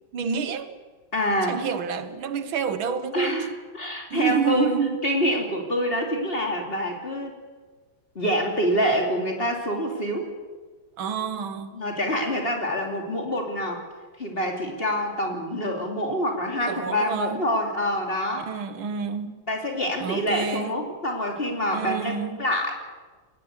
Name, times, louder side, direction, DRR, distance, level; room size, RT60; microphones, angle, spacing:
voice 1, 0.1-0.8 1.5-3.4 4.1-5.0 11.0-11.7 16.5-17.5 18.4-19.3 20.0-20.9 21.7-22.5, right 6 dB, 85° right, 2.1 m, -28 dB
voice 2, 1.1-1.6 3.1-4.7 5.0-7.4 8.1-10.3 11.7-13.8 14.2-18.5 19.5-22.1 22.4-22.7, equal, 30° left, 3.2 m, -26 dB
21.5 x 19.5 x 8.1 m
omnidirectional pair, 2.2 m